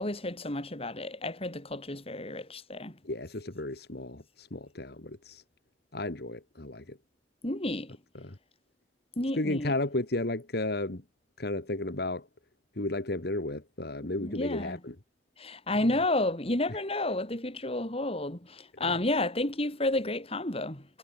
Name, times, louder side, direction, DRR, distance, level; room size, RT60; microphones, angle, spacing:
voice 1, 0.0-3.0 7.4-7.9 9.2-9.7 14.2-14.8 15.4-20.9, left 2 dB, 35° left, 4.2 m, -31 dB
voice 2, 3.0-5.4 5.9-7.0 8.1-8.4 9.4-11.0 11.4-12.3 12.8-15.0 16.7-16.8 18.7-19.0, left 2 dB, 65° left, 2.0 m, -33 dB
head